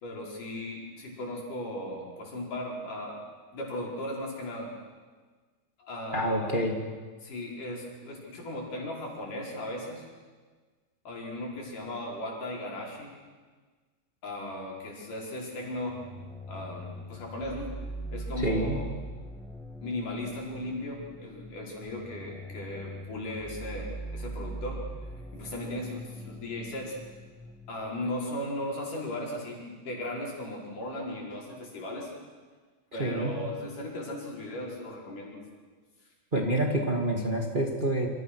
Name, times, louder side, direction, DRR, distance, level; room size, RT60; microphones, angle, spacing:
voice 1, 0.0-3.2 3.5-4.7 5.8-6.5 7.2-10.0 11.0-13.1 14.2-16.0 16.5-17.7 18.1-18.9 19.8-24.9 25.3-27.0 27.7-32.1 32.9-35.4, left 1 dB, 80° left, -2 dB, 6.7 m, -37 dB
voice 2, 6.1-6.7 18.4-18.8 33.0-33.3 36.3-38.1, right 1 dB, 20° right, 2 dB, 2.0 m, -27 dB
sound 1, 15.9-27.8, right 1 dB, ahead, 0.6 m, -41 dB
27.5 x 26.0 x 6.4 m, 1.4 s
omnidirectional pair, 3.7 m